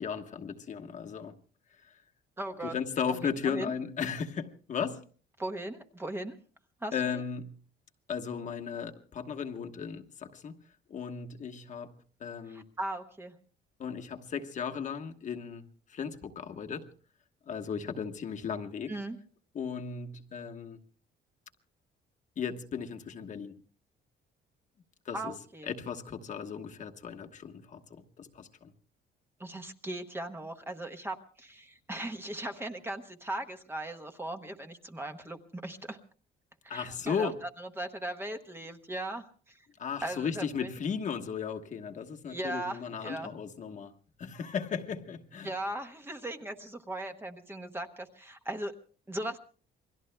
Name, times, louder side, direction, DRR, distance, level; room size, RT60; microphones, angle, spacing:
voice 1, 0.0-1.3 1.8-2.0 2.6-5.0 6.9-7.6 8.1-10.5 10.9-11.9 12.2-12.7 13.8-16.9 17.5-18.9 19.5-20.8 22.4-23.6 25.0-25.3 25.7-28.7 36.7-37.4 39.8-43.9 44.2-45.5, left 6 dB, 40° left, 1.2 m, -36 dB
voice 2, 2.4-2.7 3.5-3.7 5.4-6.3 6.8-6.9 12.5-13.3 18.9-19.2 25.1-25.7 29.4-36.0 36.6-37.3 37.6-39.6 40.0-40.7 42.3-43.3 45.4-48.7 49.1-49.4, right 1 dB, 10° right, 1.0 m, -38 dB
28.5 x 22.5 x 2.2 m
cardioid pair, 155°, 19 cm